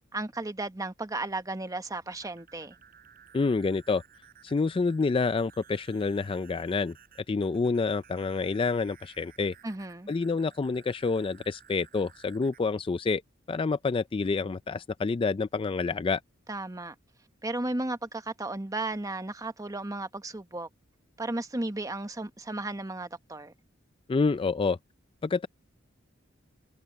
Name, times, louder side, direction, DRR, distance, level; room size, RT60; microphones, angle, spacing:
voice 1, 0.1-2.8 9.6-10.1 16.5-16.9 17.4-20.7 21.2-23.5, right 2 dB, 20° right, 1.0 m, -34 dB
sound 1, 1.9-12.6, right 8 dB, 50° right, 7.8 m, -57 dB
voice 2, 3.3-4.0 4.4-7.0 7.3-9.5 10.1-13.2 13.5-16.2 24.1-24.8 25.2-25.5, left 4 dB, 25° left, 0.3 m, -28 dB
head